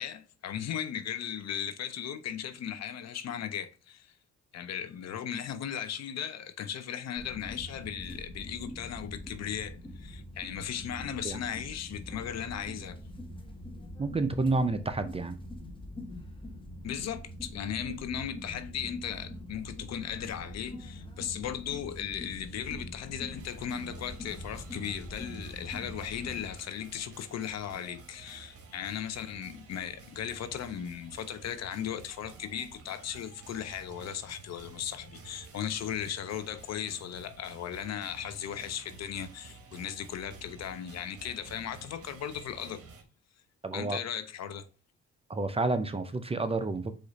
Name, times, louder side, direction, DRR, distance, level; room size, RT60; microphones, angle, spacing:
voice 1, 0.0-4.1 4.5-13.0 16.8-42.8 43.7-44.7, left 9 dB, 60° left, 0.6 m, -37 dB
sound 1, 7.2-26.5, left 1 dB, 15° left, 0.9 m, -44 dB
voice 2, 14.0-15.4 43.6-44.0 45.3-46.9, right 3 dB, 20° right, 0.5 m, -29 dB
sound 2, 23.3-43.0, right 5 dB, 50° right, 1.1 m, -51 dB
4.9 x 2.5 x 4.0 m
cardioid pair, 90°, 30 cm